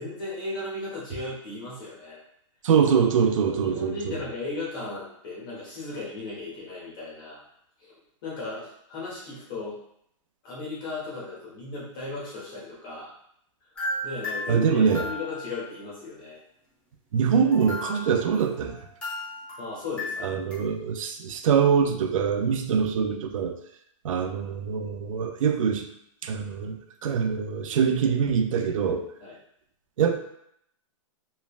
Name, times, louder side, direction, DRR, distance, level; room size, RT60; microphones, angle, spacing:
voice 1, 0.0-2.2 3.4-7.4 7.8-9.8 10.4-13.1 14.0-16.4 19.6-20.3 29.2-29.4, left 3 dB, 40° left, -6 dB, 0.9 m, -36 dB
voice 2, 2.6-4.2 14.5-15.1 17.1-18.9 20.2-23.6 24.0-25.9 26.2-29.1 30.0-30.2, right 7 dB, 75° right, 6 dB, 0.4 m, -24 dB
sound 1, 13.7-15.7 17.5-20.5, left 1 dB, 5° left, 0.4 m, -35 dB
3.1 x 2.1 x 2.3 m, 0.72 s
hypercardioid pair, 165°, 17 cm